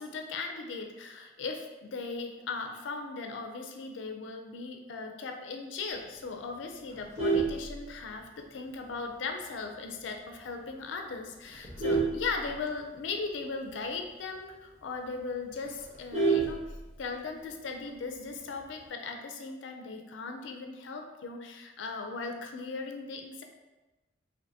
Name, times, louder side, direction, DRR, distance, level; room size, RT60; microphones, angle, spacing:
voice 1, 0.0-23.4, left 4 dB, 90° left, 4 dB, 0.4 m, -38 dB
Vehicle horn car horn honking, 6.9-8.4 8.8-9.1 9.4-9.5 9.9-10.0 10.3-10.7 11.2-13.1 13.4-13.5 13.8-13.9 14.3-14.4 14.8-14.9 15.1-17.2 18.4-18.8, right 4 dB, 35° right, 0.8 m, -30 dB
3.4 x 2.6 x 2.7 m, 1.1 s
head